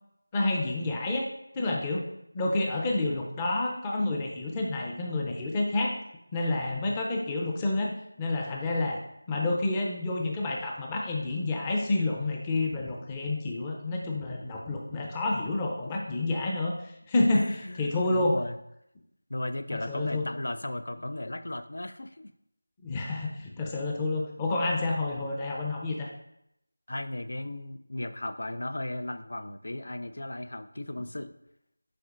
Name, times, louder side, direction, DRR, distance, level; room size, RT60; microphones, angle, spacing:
voice 1, 0.3-2.0 2.3-6.0 6.3-7.9 8.2-9.0 9.3-18.4 19.7-20.3 22.8-26.1, left 2 dB, 15° left, 0 dB, 0.5 m, -29 dB
voice 2, 17.3-18.6 19.3-22.3 26.9-31.4, left 1 dB, 65° left, 11 dB, 0.4 m, -36 dB
7.7 x 5.0 x 2.5 m, 0.81 s
figure-of-eight pair, 170°, 0 cm